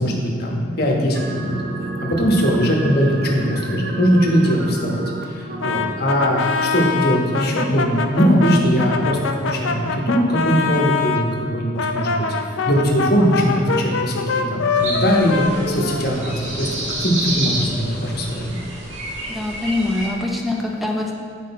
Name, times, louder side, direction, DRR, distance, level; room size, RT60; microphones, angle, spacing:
voice 1, 0.0-1.6 2.0-12.3 12.6-18.6, equal, 50° left, -1 dB, 1.2 m, -20 dB
sound 1, 1.1-6.3, right 2 dB, 50° right, 0.6 m, -30 dB
Brass instrument, 5.6-11.2 11.8-16.5, left 5 dB, 75° left, 0.5 m, -24 dB
sound 2, 14.8-20.1, right 1 dB, 75° right, 1.6 m, -29 dB
voice 2, 19.3-21.1, left 2 dB, ahead, -1 dB, 0.6 m, -24 dB
8.8 x 5.3 x 4.2 m, 2.2 s
head